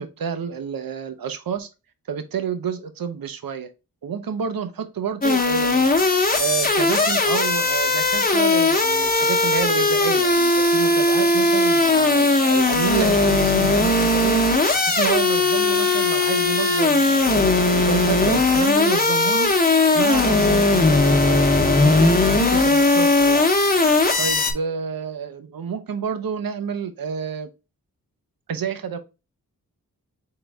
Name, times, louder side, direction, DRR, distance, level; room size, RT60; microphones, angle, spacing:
voice 1, 0.0-1.7 2.1-3.7 4.0-5.9 6.4-14.4 14.9-19.5 19.9-23.5 24.2-27.5 28.5-29.0, right 7 dB, 75° right, 0.7 m, -29 dB
sound 1, 5.2-24.5, left 2 dB, 25° left, 0.9 m, -18 dB
4.0 x 3.8 x 3.4 m
wide cardioid pair, 80°, 35 cm